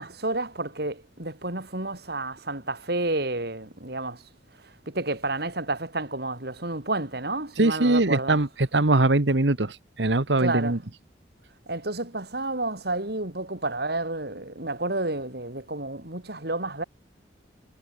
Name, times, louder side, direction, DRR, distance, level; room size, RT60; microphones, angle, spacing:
voice 1, 0.0-8.4 10.4-10.8 11.7-16.8, right 2 dB, 60° right, 4.6 m, -30 dB
voice 2, 7.6-10.8, right 2 dB, 75° right, 1.5 m, -22 dB
head